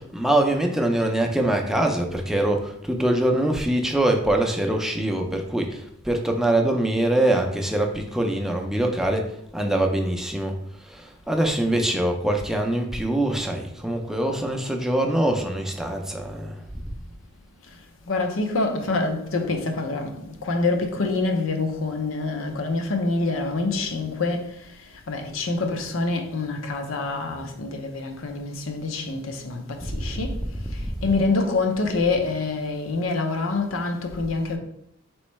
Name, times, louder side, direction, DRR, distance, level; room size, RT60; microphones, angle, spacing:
voice 1, 0.0-16.6 16.9-17.0 29.8-30.5 30.8-31.1, right 1 dB, ahead, 0.4 m, -24 dB
voice 2, 18.1-24.6 25.1-30.4 30.7-34.6, left 3 dB, 85° left, 0.6 m, -26 dB
4.3 x 3.1 x 3.1 m
head